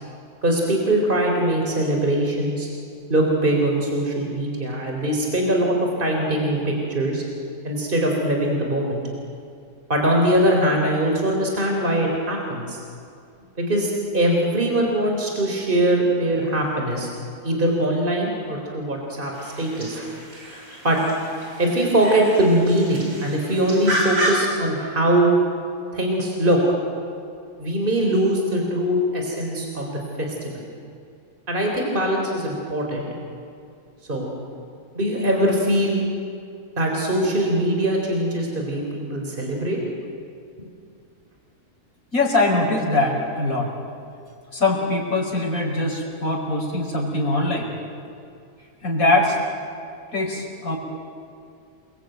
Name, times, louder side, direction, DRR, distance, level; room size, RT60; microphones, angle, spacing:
voice 1, 0.4-2.7 3.1-7.2 7.6-9.0 9.9-12.8 13.6-17.1 17.4-20.1 20.8-21.0 21.6-25.3 25.9-26.6 27.6-30.6 31.5-33.1 34.1-34.3 34.9-36.0 36.8-39.8, right 1 dB, 35° right, 1 dB, 4.0 m, -22 dB
sound 1, 19.3-24.4, right 1 dB, 60° right, 5.5 m, -30 dB
voice 2, 42.1-43.7 44.5-47.7 48.8-49.4 50.1-50.8, left 2 dB, 65° left, -2 dB, 5.7 m, -22 dB
29.0 x 22.0 x 9.2 m, 2.5 s
omnidirectional pair, 1.6 m